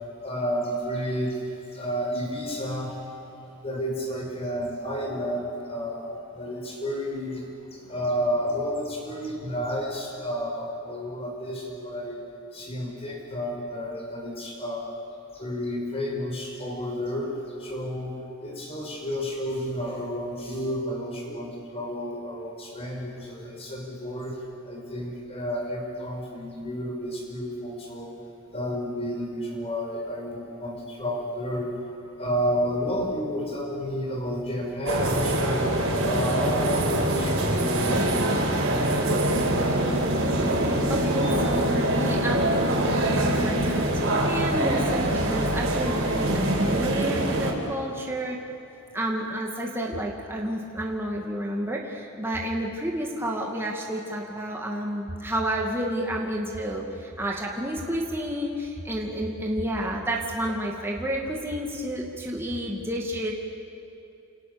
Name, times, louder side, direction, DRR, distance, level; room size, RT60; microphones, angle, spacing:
voice 1, 0.2-1.4 1.7-2.9 3.6-12.2 12.5-15.0 15.3-17.3 17.6-24.3 24.6-28.1 28.5-31.7 32.2-35.7 36.0-39.1 40.1-40.2 41.2-41.3 44.0-44.1, equal, 30° left, 0 dB, 6.0 m, -31 dB
sound 1, 34.9-47.5, right 1 dB, 65° right, 5.3 m, -24 dB
voice 2, 40.9-48.4 48.9-63.3, right 1 dB, 10° right, -2 dB, 2.3 m, -30 dB
29.5 x 28.0 x 7.1 m, 2.9 s
head